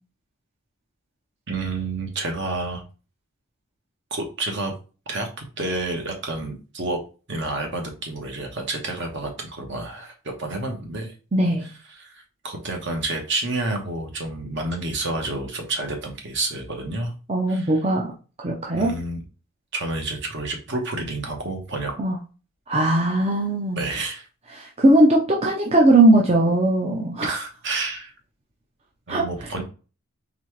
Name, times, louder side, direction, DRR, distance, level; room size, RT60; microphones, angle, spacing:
voice 1, 1.5-2.8 4.1-4.7 5.1-7.0 7.3-10.1 10.4-11.1 11.9-17.1 17.5-17.7 18.7-19.2 19.7-21.9 23.8-24.3 27.2-28.1 29.1-29.6, right 2 dB, 55° right, 3 dB, 1.1 m, -29 dB
voice 2, 11.3-11.6 17.3-18.1 18.4-18.9 22.0-22.2 22.7-23.8 24.6-27.4 29.1-29.2, right 1 dB, 30° right, -1 dB, 0.6 m, -19 dB
4.1 x 3.5 x 3.2 m, 0.34 s
head